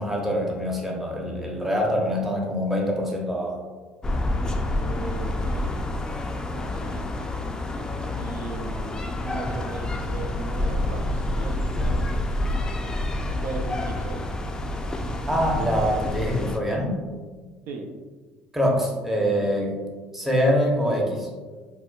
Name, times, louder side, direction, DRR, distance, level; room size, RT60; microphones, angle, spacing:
voice 1, 0.0-3.6 15.3-17.0 18.5-19.7 20.1-21.3, equal, 5° right, -1 dB, 0.8 m, -24 dB
sound 1, 4.0-16.6, left 1 dB, 15° left, 0.4 m, -28 dB
voice 2, 4.7-5.9 6.5-7.1 8.2-12.3 13.4-14.2 17.7-17.9, right 3 dB, 70° right, 2 dB, 0.4 m, -37 dB
4.2 x 2.2 x 2.3 m, 1.4 s
supercardioid pair, 80°, 4 cm